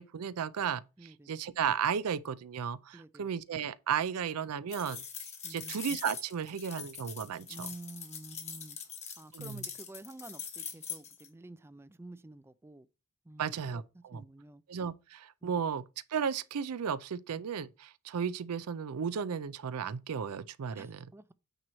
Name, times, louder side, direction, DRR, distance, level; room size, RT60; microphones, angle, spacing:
voice 1, 0.0-5.0 5.5-7.7 9.3-9.6 13.4-14.2 14.7-15.8 16.1-21.0, right 7 dB, 80° right, 0.5 m, -34 dB
voice 2, 1.0-1.3 2.9-3.3 5.4-5.8 7.5-12.9 13.2-14.6 15.4-15.5 20.7-21.3, right 2 dB, 10° right, 0.3 m, -50 dB
sound 1, 4.7-11.3, left 7 dB, 30° left, 1.4 m, -43 dB
8.9 x 3.0 x 6.1 m
head